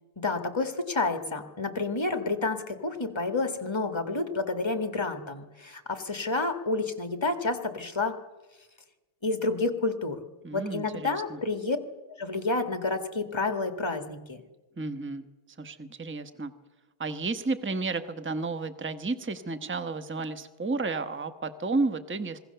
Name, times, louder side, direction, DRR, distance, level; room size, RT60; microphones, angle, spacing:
voice 1, 0.2-8.2 9.2-10.2 10.5-11.8 12.2-14.4, left 3 dB, 15° left, 7 dB, 1.7 m, -29 dB
voice 2, 10.4-11.4 14.8-15.3 15.6-16.5 17.0-22.4, right 3 dB, 10° right, 10 dB, 0.5 m, -32 dB
26.0 x 21.5 x 6.9 m, 1.1 s
omnidirectional pair, 2.3 m